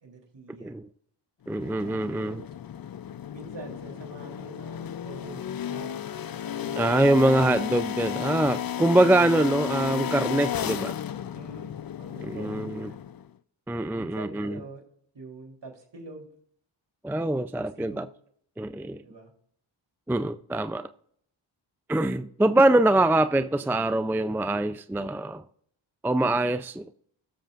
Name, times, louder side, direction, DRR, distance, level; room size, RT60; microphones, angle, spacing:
voice 1, 0.0-0.8 1.8-2.5 3.3-7.1 8.8-9.2 11.3-11.7 12.0-13.1 13.9-14.8 15.1-16.3 17.6-18.1 19.0-19.3, right 3 dB, 55° right, 3.4 m, -45 dB
sound 1, 1.5-13.3, left 9 dB, 45° left, 0.6 m, -33 dB
voice 2, 1.5-2.4 6.8-10.9 12.2-12.9 13.7-14.6 17.0-18.1 18.6-19.0 20.1-20.9 21.9-25.4 26.0-26.9, right 1 dB, 5° right, 0.4 m, -24 dB
18.5 x 7.4 x 2.5 m
cardioid pair, 50°, 49 cm